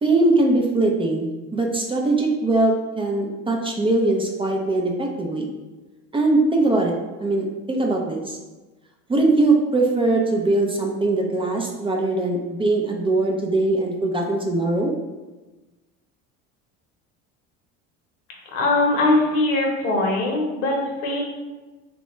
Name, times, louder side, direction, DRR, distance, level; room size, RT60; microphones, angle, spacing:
voice 1, 0.0-5.5 6.1-6.9 7.2-8.4 9.1-14.9, right 2 dB, 15° right, 0 dB, 0.4 m, -21 dB
voice 2, 18.5-21.2, left 2 dB, 85° left, 0 dB, 0.9 m, -21 dB
3.1 x 2.2 x 3.0 m, 1.2 s
supercardioid pair, 85°, 36 cm